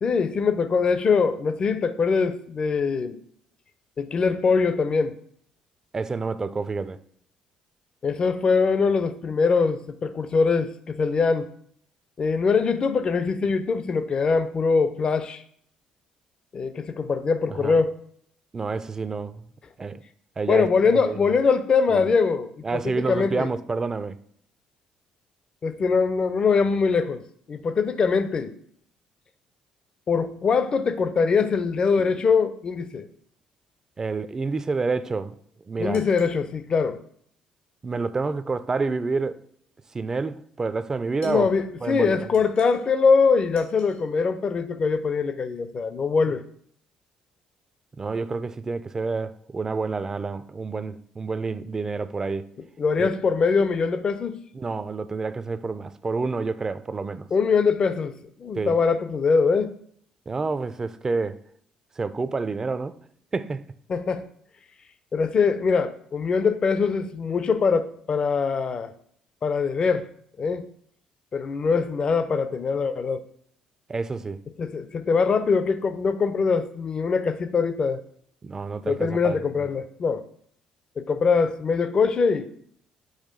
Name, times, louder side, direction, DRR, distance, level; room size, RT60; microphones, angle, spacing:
voice 1, 0.0-3.2 4.0-5.2 8.0-11.5 12.2-15.4 16.5-18.0 20.5-23.5 25.6-27.2 27.5-28.5 30.1-33.1 35.8-37.0 41.2-46.4 52.8-54.4 57.3-58.1 58.4-59.7 63.9-64.3 65.1-68.9 69.4-70.1 70.4-70.7 71.3-73.2 74.6-78.0 78.8-80.3 81.0-82.5, left 5 dB, 40° left, 0.5 m, -23 dB
voice 2, 5.9-7.0 17.6-17.8 18.5-19.4 19.8-20.0 20.4-21.2 21.9-22.1 22.6-24.2 34.0-35.4 35.7-36.0 37.8-39.4 39.9-41.5 41.8-42.3 46.2-46.3 48.0-52.5 53.0-53.1 54.5-57.3 58.6-58.7 60.3-61.4 62.0-63.0 63.3-63.7 73.9-74.4 78.4-79.4, right 4 dB, 25° right, 0.4 m, -28 dB
sound 1, 35.9-36.4 41.2-41.5 42.3-42.9 43.5-44.0, left 3 dB, 85° left, 1.8 m, -51 dB
6.4 x 3.0 x 5.1 m
cardioid pair, 95°, 2 cm